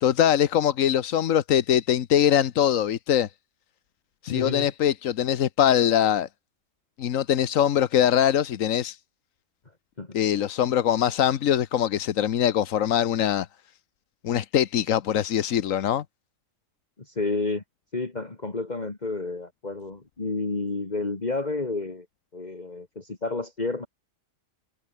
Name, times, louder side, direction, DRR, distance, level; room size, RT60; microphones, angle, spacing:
voice 1, 0.0-3.3 4.2-6.3 7.0-9.0 10.1-13.5 14.2-16.0, left 10 dB, 90° left, 1.3 m, -22 dB
voice 2, 4.3-4.7 10.0-10.2 17.1-17.6 17.9-22.1 22.3-23.9, left 3 dB, 35° left, 2.2 m, -30 dB
omnidirectional pair, 1.3 m